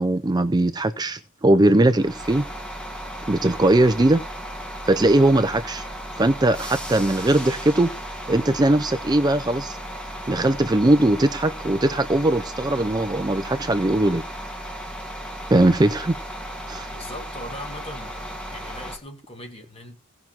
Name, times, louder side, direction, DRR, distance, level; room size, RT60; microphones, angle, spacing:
voice 1, 0.0-2.4 3.3-4.2 4.8-5.9 6.2-7.9 8.3-9.8 10.3-14.2 15.5-16.2 16.7-16.9, right 1 dB, 20° right, 0.5 m, -20 dB
sound 1, 2.0-19.0, equal, 5° left, 1.8 m, -35 dB
voice 2, 16.9-20.0, left 1 dB, 25° left, 2.1 m, -39 dB
17.5 x 6.1 x 4.3 m
head